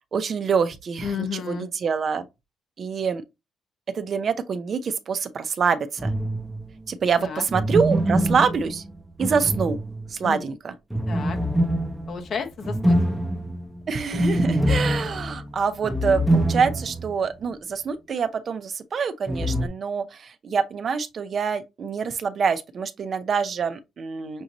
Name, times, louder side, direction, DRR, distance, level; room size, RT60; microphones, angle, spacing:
voice 1, 0.1-2.3 2.8-3.2 3.9-6.1 6.9-8.8 9.2-9.8 10.1-10.7 13.9-24.4, right 6 dB, 50° right, 0.7 m, -26 dB
voice 2, 1.0-1.7 7.2-7.4 10.2-10.4 11.1-11.4 12.1-13.0, left 6 dB, 60° left, 1.0 m, -32 dB
sound 1, 6.0-6.7 7.5-10.2 10.9-17.1 17.4-17.5 19.3-19.7, equal, 5° right, 0.9 m, -25 dB
6.2 x 2.6 x 3.0 m
cardioid pair, 90°, 0 cm